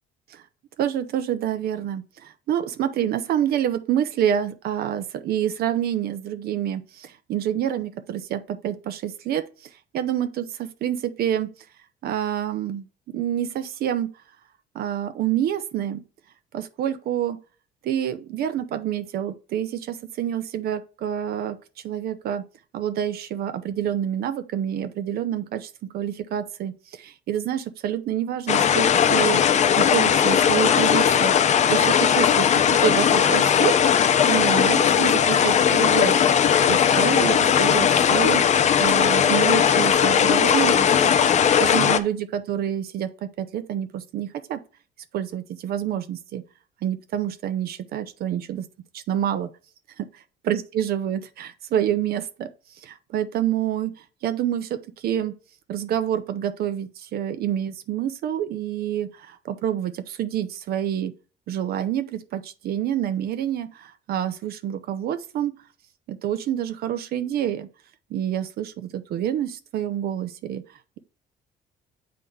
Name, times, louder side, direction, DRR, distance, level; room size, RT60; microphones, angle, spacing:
voice 1, 0.8-11.7 12.0-14.1 14.7-16.0 16.5-17.4 17.8-22.4 22.7-31.3 31.7-32.5 32.8-36.2 36.7-44.6 45.1-46.4 46.8-48.7 48.9-49.5 50.0-55.3 55.7-61.1 61.5-65.5 66.1-67.7 68.1-71.0, right 10 dB, 65° right, 0.7 m, -27 dB
sound 1, 28.5-42.0, left 8 dB, 45° left, 0.6 m, -18 dB
8.4 x 3.7 x 3.4 m
cardioid pair, 110°, 17 cm